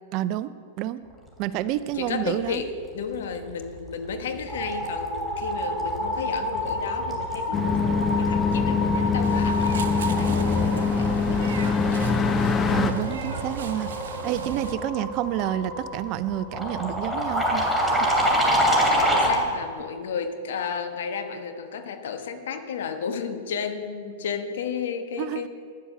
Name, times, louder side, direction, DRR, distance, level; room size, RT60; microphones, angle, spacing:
voice 1, 0.1-0.5 0.8-1.0 1.4-2.6 12.7-13.9 14.2-18.1 25.2-25.5, right 12 dB, 45° right, 15 dB, 0.5 m, -29 dB
voice 2, 1.9-11.8 18.7-25.5, left 6 dB, 65° left, 7 dB, 1.3 m, -33 dB
sound 1, 3.6-3.9 4.2-19.5, equal, ahead, 2.9 m, -27 dB
sound 2, 7.5-12.9, left 4 dB, 20° left, 0.8 m, -23 dB
Meow, 9.2-14.7, right 6 dB, 70° right, 0.9 m, -38 dB
10.5 x 10.0 x 6.6 m, 2.1 s
hypercardioid pair, 100°, 0 cm